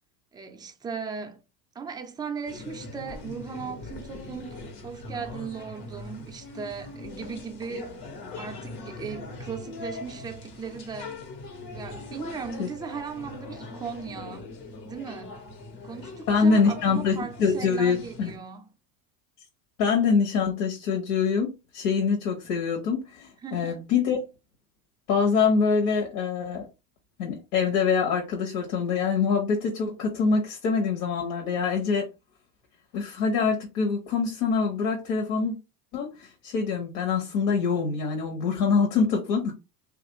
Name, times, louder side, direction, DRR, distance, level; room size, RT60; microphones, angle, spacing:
voice 1, 0.3-1.4 1.7-8.0 8.4-11.2 11.7-14.5 14.8-15.4 15.8-18.7 23.4-23.8, right 5 dB, 10° right, 0.4 m, -37 dB
sound 1, 2.5-18.4, left 2 dB, 75° left, 1.2 m, -41 dB
voice 2, 16.3-18.3 19.8-21.5 21.7-24.2 25.1-26.7 27.2-32.1 32.9-35.5 35.9-39.5, left 5 dB, 60° left, 1.0 m, -25 dB
2.9 x 2.5 x 2.9 m
hypercardioid pair, 85°, 47 cm